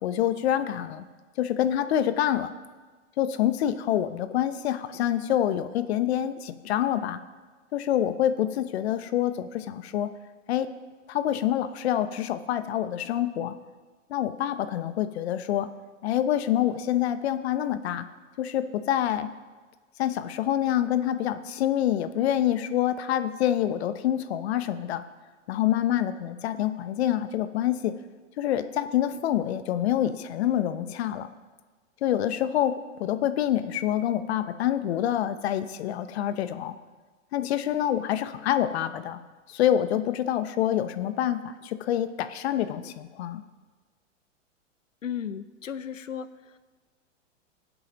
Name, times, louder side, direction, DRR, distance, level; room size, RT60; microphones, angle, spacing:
voice 1, 0.0-1.0 1.4-2.5 3.2-7.2 7.7-10.1 10.5-10.7 11.1-13.6 14.1-15.7 16.0-18.0 18.4-19.3 20.0-25.0 25.5-27.9 28.4-31.3 32.0-36.8 37.3-39.2 39.5-43.4, left 11 dB, 55° left, 11 dB, 0.8 m, -26 dB
voice 2, 45.0-46.6, left 8 dB, 85° left, 13 dB, 0.7 m, -35 dB
23.0 x 7.9 x 3.0 m, 1.4 s
hypercardioid pair, 105°, 37 cm